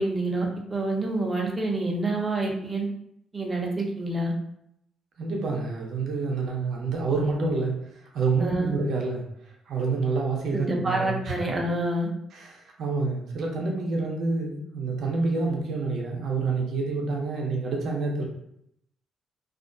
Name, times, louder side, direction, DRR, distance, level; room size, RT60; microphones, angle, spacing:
voice 1, 0.0-2.9 3.3-4.3 8.4-8.7 10.5-12.1, right 2 dB, 25° right, -1 dB, 0.6 m, -27 dB
voice 2, 5.2-7.8 8.1-9.2 9.7-11.3 12.3-18.2, right 3 dB, 70° right, -1 dB, 0.6 m, -27 dB
2.4 x 2.1 x 2.5 m, 0.74 s
cardioid pair, 90°, 0 cm